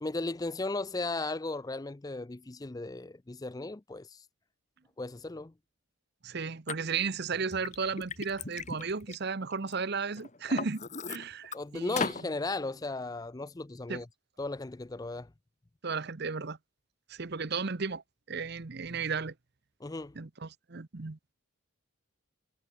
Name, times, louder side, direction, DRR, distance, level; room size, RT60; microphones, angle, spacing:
voice 1, 0.0-4.2 5.0-5.5 11.5-14.1 14.4-15.3 19.8-20.1, left 2 dB, 15° left, 0.4 m, -36 dB
voice 2, 6.2-12.1 13.9-14.0 15.8-16.6 17.1-18.0 18.3-19.3 20.1-21.2, right 5 dB, 50° right, 0.8 m, -34 dB
Liquid, 6.7-6.8 7.3-9.7 10.2-11.6 12.0-12.2, left 4 dB, 35° left, 1.5 m, -37 dB
head